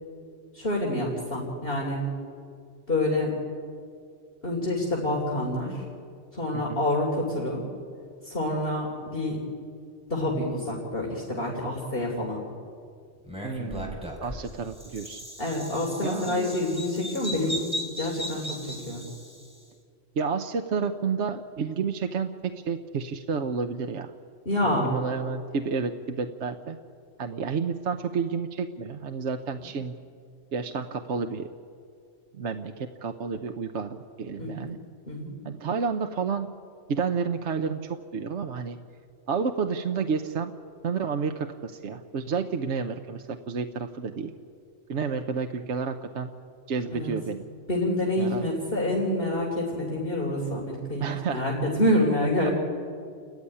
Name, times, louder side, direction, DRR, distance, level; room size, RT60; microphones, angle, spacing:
voice 1, 0.5-2.0 2.9-3.3 4.4-5.8 6.3-7.6 8.2-9.4 10.1-12.4 15.4-17.6 18.0-19.0 24.5-24.9 34.4-34.7 35.1-35.3 46.9-47.1 47.7-52.5, left 1 dB, 50° left, -3 dB, 3.5 m, -27 dB
Bird vocalization bird call bird song, 13.3-19.5, equal, 5° right, 4.1 m, -37 dB
voice 2, 13.4-15.2 16.0-16.6 20.2-24.1 24.6-26.8 27.2-30.0 30.5-31.5 32.3-34.8 35.4-36.5 36.9-38.8 39.3-40.5 40.8-44.3 44.9-46.3 46.7-47.4 48.2-48.5 51.0-51.4, right 5 dB, 70° right, 6 dB, 1.2 m, -30 dB
30.0 x 14.5 x 9.9 m, 2.4 s
omnidirectional pair, 1.2 m